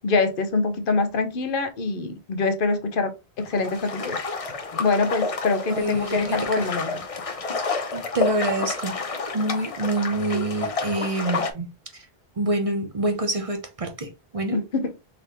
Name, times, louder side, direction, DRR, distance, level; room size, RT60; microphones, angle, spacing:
voice 1, 0.0-4.2 4.8-7.0 14.5-14.9, left 3 dB, 60° left, 0.9 m, -24 dB
sound 1, 3.4-11.5, left 4 dB, 40° left, 0.6 m, -30 dB
voice 2, 5.8-6.7 7.9-9.0 9.3-12.1 12.4-14.6, right 2 dB, 40° right, 0.7 m, -27 dB
4.0 x 3.4 x 2.9 m
omnidirectional pair, 1.1 m